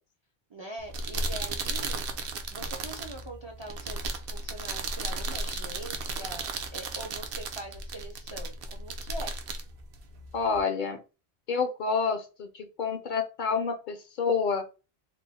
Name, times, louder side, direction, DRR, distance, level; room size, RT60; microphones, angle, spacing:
voice 1, 0.5-2.0 2.5-9.3, right 2 dB, 40° right, 2 dB, 0.4 m, -43 dB
sound 1, 0.8-10.6, right 3 dB, 70° right, 0.7 m, -35 dB
voice 2, 10.3-11.0 11.5-14.6, left 5 dB, 60° left, 7 dB, 0.6 m, -28 dB
3.0 x 2.0 x 3.9 m, 0.32 s
omnidirectional pair, 1.0 m